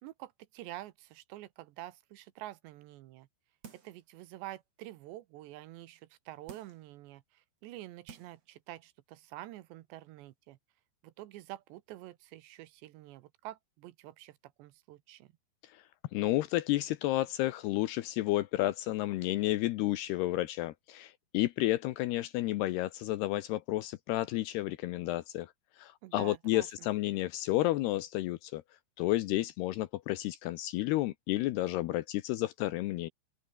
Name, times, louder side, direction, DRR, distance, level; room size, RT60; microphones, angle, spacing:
voice 1, 0.0-3.3 3.7-10.6 11.0-15.3 26.0-26.9, right 15 dB, 75° right, 3.0 m, -48 dB
sound 1, 3.6-4.1 4.5-4.6 6.5-6.9 7.6-7.7 8.1-8.5 8.9-9.0, right 6 dB, 40° right, 3.5 m, -52 dB
voice 2, 16.1-25.5 25.8-28.6 29.0-33.1, left 16 dB, 80° left, 2.5 m, -31 dB
omnidirectional pair, 5.4 m